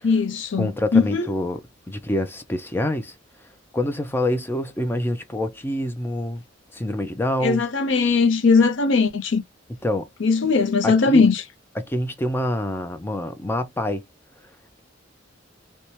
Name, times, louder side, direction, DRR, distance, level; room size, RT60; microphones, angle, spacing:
voice 1, 0.0-1.3 7.4-9.4 10.2-11.4, left 4 dB, 70° left, 0.6 m, -19 dB
voice 2, 0.6-3.1 3.7-6.4 6.7-7.6 9.8-10.1 10.8-11.2 11.8-14.0, left 1 dB, 10° left, 0.4 m, -26 dB
2.7 x 2.2 x 3.0 m
head